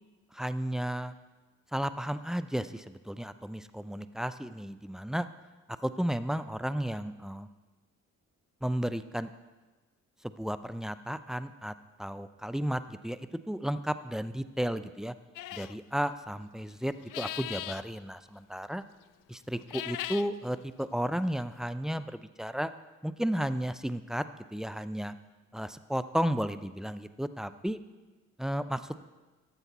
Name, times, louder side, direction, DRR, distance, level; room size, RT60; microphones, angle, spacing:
voice 1, 0.3-1.1 1.7-5.3 5.7-7.5 8.6-9.3 10.2-15.1 15.5-18.8 19.3-22.7 23.0-24.2 24.5-25.1 25.5-27.8 28.4-29.0, equal, ahead, 12 dB, 0.5 m, -33 dB
sound 1, 15.4-15.8 17.0-17.8 19.6-20.3, left 14 dB, 70° left, 0.5 m, -38 dB
12.0 x 8.1 x 4.2 m, 1.2 s
supercardioid pair, 45°, 33 cm